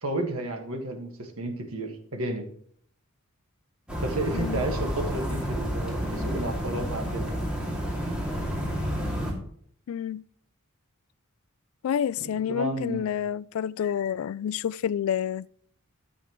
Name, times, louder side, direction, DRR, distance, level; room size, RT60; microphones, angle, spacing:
voice 1, 0.0-2.5 4.0-7.5 12.2-13.1, right 2 dB, 75° right, 1.7 m, -32 dB
sound 1, 3.9-9.3, equal, 5° right, 2.5 m, -30 dB
voice 2, 4.3-4.6 9.9-10.2 11.8-15.5, left 9 dB, 70° left, 0.3 m, -29 dB
13.5 x 7.3 x 3.1 m
head